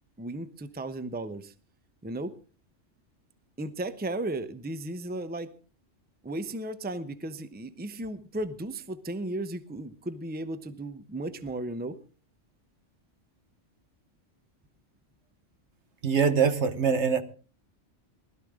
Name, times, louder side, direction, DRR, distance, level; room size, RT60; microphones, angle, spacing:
voice 1, 0.2-1.5 2.0-2.3 3.6-5.5 6.2-12.0, right 1 dB, 10° right, 12 dB, 0.7 m, -35 dB
voice 2, 16.0-17.2, right 6 dB, 65° right, 9 dB, 1.5 m, -23 dB
20.0 x 13.0 x 3.7 m, 0.37 s
omnidirectional pair, 1.3 m